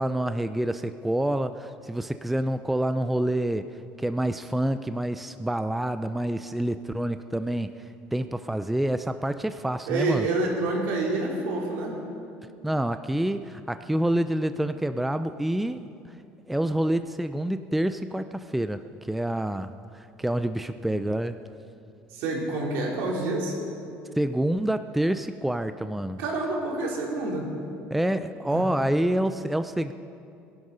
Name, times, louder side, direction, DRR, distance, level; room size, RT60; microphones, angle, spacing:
voice 1, 0.0-3.7 4.0-7.7 8.1-10.3 12.6-15.8 16.5-21.4 24.2-26.2 27.9-29.9, right 1 dB, 5° right, 10 dB, 0.3 m, -27 dB
voice 2, 9.9-12.0 22.1-23.6 26.2-27.5 28.5-28.7, right 2 dB, 70° right, -2 dB, 3.6 m, -28 dB
21.0 x 11.5 x 5.5 m, 2.6 s
cardioid pair, 160°, 4 cm